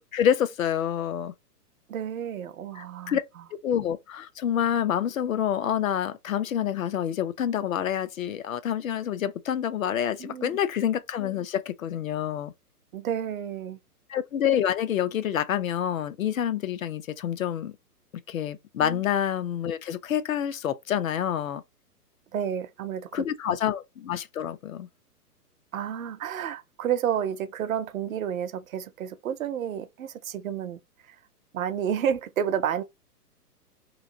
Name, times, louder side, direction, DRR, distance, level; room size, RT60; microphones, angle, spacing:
voice 1, 0.1-1.3 2.8-3.2 3.6-12.5 14.1-17.7 18.3-21.6 23.1-24.9, left 10 dB, 60° left, 0.7 m, -27 dB
voice 2, 1.9-3.2 10.2-10.6 12.9-13.8 18.8-19.0 22.3-23.6 25.7-30.8 31.1-31.2 31.5-32.8, right 9 dB, 60° right, 0.6 m, -30 dB
3.1 x 2.5 x 3.7 m
hypercardioid pair, 140°, 47 cm